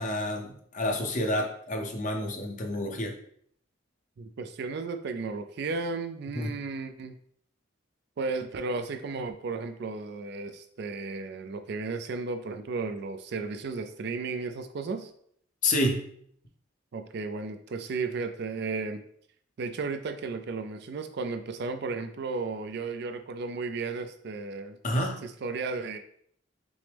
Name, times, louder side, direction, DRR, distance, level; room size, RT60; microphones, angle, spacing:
voice 1, 0.0-3.1 6.3-6.5 15.6-16.1 24.8-25.2, left 1 dB, 40° left, 3 dB, 0.7 m, -29 dB
voice 2, 4.2-7.1 8.2-15.1 16.9-19.0 19.6-26.0, right 4 dB, 55° right, 8 dB, 0.4 m, -34 dB
6.0 x 2.0 x 3.3 m, 0.65 s
head